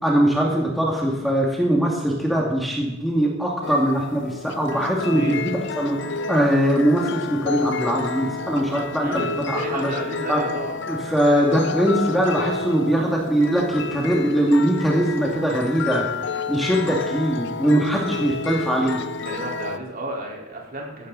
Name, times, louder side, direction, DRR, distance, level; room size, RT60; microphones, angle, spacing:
voice 1, 0.0-6.0 6.3-9.9 10.3-10.4 10.9-16.1 16.5-19.0, right 1 dB, ahead, -3 dB, 2.4 m, -21 dB
sound 1, 3.6-19.8, left 4 dB, 60° left, 0.8 m, -30 dB
voice 2, 5.1-5.4 9.0-10.8 19.2-21.1, right 1 dB, 45° right, -2 dB, 4.4 m, -32 dB
16.0 x 14.0 x 4.2 m, 0.98 s
head